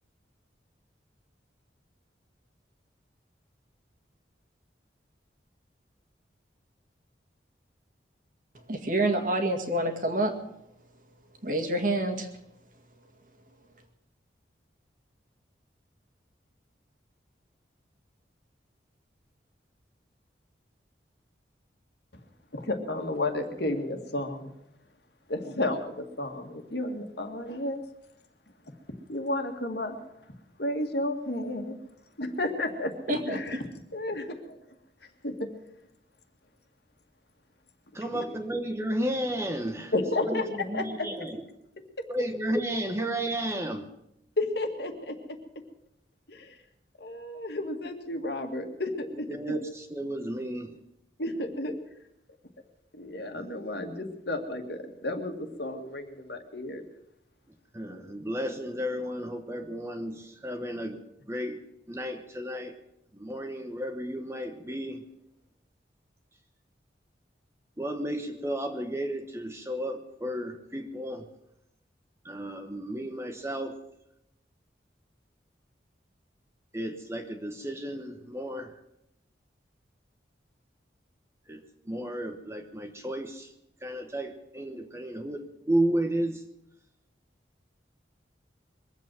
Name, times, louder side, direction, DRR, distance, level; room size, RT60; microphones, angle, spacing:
voice 1, 8.7-10.3 11.4-12.3 33.1-33.6, right 1 dB, 45° right, 5 dB, 2.0 m, -27 dB
voice 2, 22.5-24.5 25.3-27.8 29.1-30.0 30.6-31.8 32.2-34.6 35.2-35.5 38.1-38.2 39.9-40.4 40.7-41.1 42.0-42.1 44.4-45.2 46.3-46.6 47.0-49.6 51.2-51.8 52.9-56.8, left 2 dB, 65° left, 5 dB, 2.0 m, -32 dB
voice 3, 37.9-41.4 42.1-43.9 49.3-50.8 57.7-61.0 61.3-61.6 61.9-62.7 63.1-65.0 67.8-71.3 72.2-73.8 76.7-78.7 81.5-83.5 83.8-86.4, right 1 dB, 15° right, 6 dB, 1.0 m, -33 dB
22.5 x 8.3 x 7.5 m, 0.82 s
head